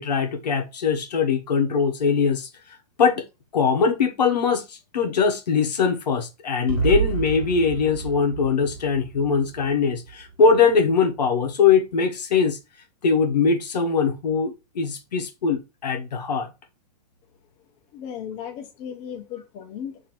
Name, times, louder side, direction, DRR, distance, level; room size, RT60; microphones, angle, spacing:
voice 1, 0.0-3.2 3.5-12.6 13.0-16.5, left 5 dB, 90° left, 1.1 m, -22 dB
sound 1, 6.7-10.6, right 7 dB, 40° right, 1.5 m, -29 dB
voice 2, 17.9-20.0, left 8 dB, 35° left, 1.0 m, -36 dB
3.0 x 2.9 x 4.2 m
hypercardioid pair, 140°, 20 cm